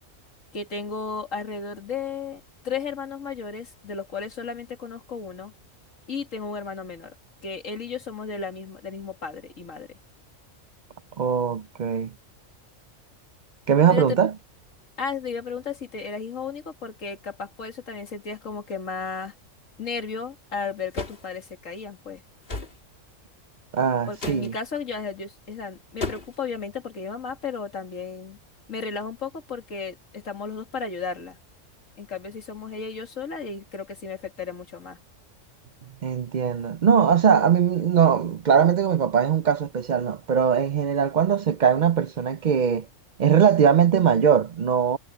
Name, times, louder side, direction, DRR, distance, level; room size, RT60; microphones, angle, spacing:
voice 1, 0.5-5.5 6.1-7.1 7.4-10.0 13.9-14.2 15.0-19.3 19.8-22.2 24.1-28.4 28.7-31.4 32.0-35.0, left 5 dB, 85° left, 2.6 m, -34 dB
voice 2, 11.2-12.1 13.7-14.3 23.7-24.5 36.0-42.9 43.2-45.0, right 7 dB, 50° right, 0.5 m, -20 dB
sound 1, 20.9-21.3 22.5-22.8 24.2-24.5 26.0-26.4, left 3 dB, 50° left, 2.3 m, -32 dB
omnidirectional pair, 1.3 m